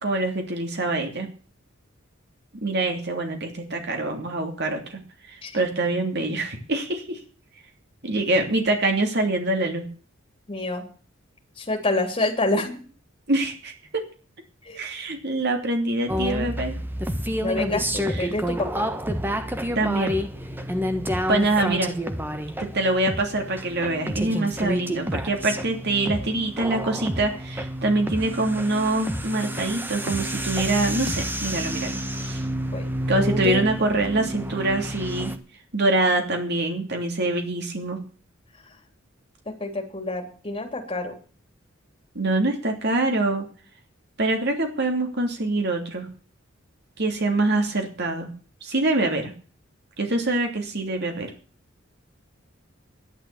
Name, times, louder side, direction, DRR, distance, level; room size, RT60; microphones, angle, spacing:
voice 1, 0.0-1.3 2.5-5.0 5.3-7.2 8.0-9.8 13.3-14.0 14.7-16.8 18.2-18.3 19.7-20.2 21.3-21.9 22.6-32.4 33.1-35.3 35.7-38.0 42.1-43.5 44.2-46.1 47.0-48.3 48.6-49.3 50.0-51.3, right 2 dB, 55° right, 3 dB, 3.0 m, -25 dB
voice 2, 10.5-10.8 11.6-12.8 14.6-14.8 17.4-18.9 32.7-32.9 39.4-41.2, left 2 dB, 25° left, 3 dB, 3.4 m, -27 dB
sound 1, 16.1-35.4, equal, 10° right, 1.3 m, -29 dB
11.5 x 11.0 x 7.1 m, 0.40 s
head